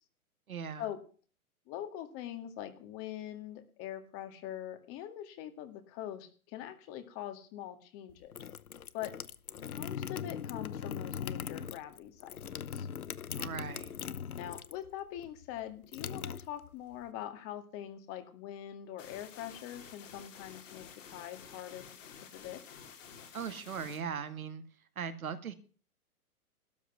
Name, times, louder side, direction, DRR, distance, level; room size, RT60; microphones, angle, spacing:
voice 1, 0.5-0.8 13.4-13.9 23.3-24.6 25.0-25.5, right 7 dB, 70° right, 9 dB, 2.1 m, -39 dB
voice 2, 1.7-8.3 8.9-9.1 9.6-12.9 14.4-21.8 22.3-22.6, left 11 dB, 30° left, 8 dB, 2.1 m, -43 dB
sound 1, 8.1-14.9 15.2-17.0, left 8 dB, 80° left, 0.9 m, -40 dB
sound 2, 19.0-24.0, left 7 dB, 60° left, 3.9 m, -51 dB
13.0 x 8.4 x 9.5 m, 0.40 s
figure-of-eight pair, 120°, 44 cm